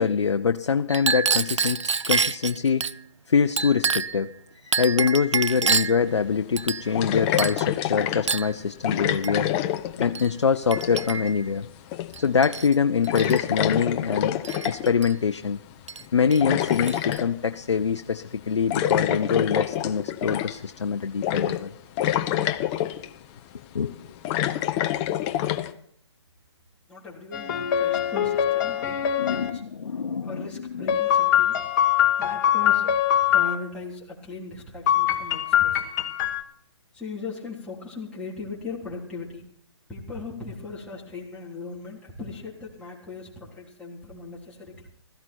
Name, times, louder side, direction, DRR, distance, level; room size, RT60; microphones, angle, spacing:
voice 1, 0.0-2.9 3.3-4.3 4.6-9.5 10.0-11.7 12.2-15.6 16.1-21.7 23.7-23.9 29.2-30.9, left 6 dB, 80° left, 9 dB, 0.7 m, -24 dB
Chink clink, 0.9-3.0 3.6-4.2 4.7-6.0 6.6-7.1 7.4-7.7 8.3-8.5 9.2-9.4 10.2-10.3 10.7-11.4 12.1-12.7 13.0-13.4 14.4-15.1 15.9-16.0 16.3-17.2, right 5 dB, 85° right, 0.6 m, -27 dB
sound 1, 6.0-6.1 6.9-8.3 8.8-10.4 10.6-11.2 11.9-12.3 12.6-12.7 13.1-15.0 16.0-17.3 18.7-20.7 21.2-21.7 22.0-23.1 23.8-25.7, left 12 dB, 25° left, 0.8 m, -26 dB
voice 2, 26.9-29.6 30.2-31.6 32.2-35.8 36.9-39.4 39.9-44.9, left 3 dB, 5° left, -5 dB, 3.4 m, -38 dB
sound 2, 27.3-29.5 30.9-33.5 34.9-36.4, left 10 dB, 40° left, 1.5 m, -22 dB
16.5 x 14.5 x 4.5 m, 0.65 s
hypercardioid pair, 140°, 15 cm